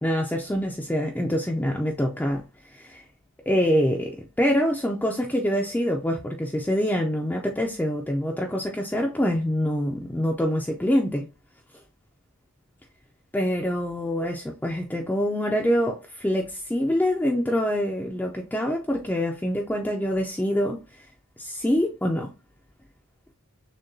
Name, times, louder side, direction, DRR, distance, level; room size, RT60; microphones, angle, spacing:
voice 1, 0.0-3.0 3.5-11.3 13.3-21.1 21.4-22.3, equal, 10° left, 0.3 m, -25 dB
6.4 x 2.2 x 2.6 m
head